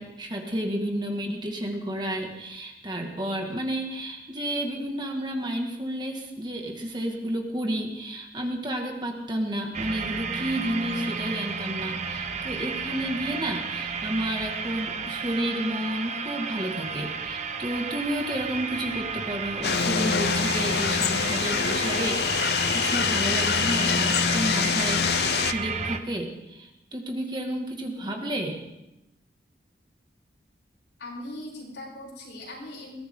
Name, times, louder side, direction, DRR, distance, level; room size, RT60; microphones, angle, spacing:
voice 1, 0.0-28.6, right 1 dB, 25° right, 2 dB, 2.0 m, -31 dB
sound 1, 9.7-26.0, right 5 dB, 40° right, 1.1 m, -32 dB
sound 2, 19.6-25.5, left 6 dB, 65° left, 0.6 m, -25 dB
voice 2, 31.0-33.0, left 1 dB, 85° left, -3 dB, 7.6 m, -39 dB
21.5 x 17.5 x 3.8 m, 0.91 s
head